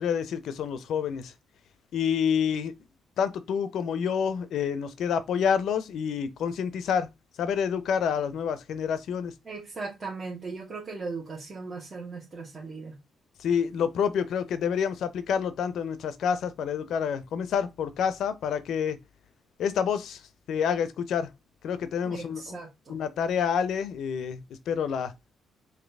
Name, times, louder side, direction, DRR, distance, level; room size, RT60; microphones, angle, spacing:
voice 1, 0.0-1.3 1.9-2.7 3.2-7.1 7.4-9.3 13.4-19.0 19.6-20.2 20.5-21.3 21.6-22.4 22.9-25.1, left 7 dB, 70° left, 0.6 m, -28 dB
voice 2, 9.4-13.0 22.0-23.0, right 4 dB, 35° right, 1.5 m, -38 dB
4.1 x 2.7 x 3.3 m
cardioid pair, 90°, 0 cm